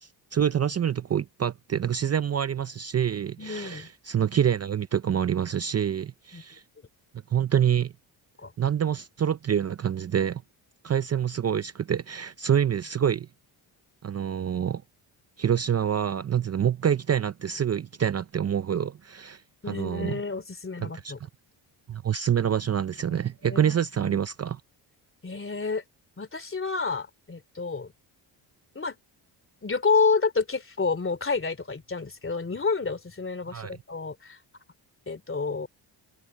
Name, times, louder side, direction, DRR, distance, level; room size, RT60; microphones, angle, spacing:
voice 1, 0.0-6.6 7.3-7.9 8.6-10.4 10.8-13.3 14.0-14.8 15.4-19.4 19.7-20.2 20.8-21.1 21.9-24.6 33.5-33.8, right 9 dB, 35° right, 0.6 m, -26 dB
voice 2, 3.4-3.9 6.3-6.4 8.4-8.5 19.6-21.2 23.1-23.2 23.4-24.2 25.2-25.8 26.2-27.9 28.7-29.0 29.6-34.4 35.1-35.7, left 4 dB, 25° left, 2.9 m, -29 dB
cardioid pair, 75°, 46 cm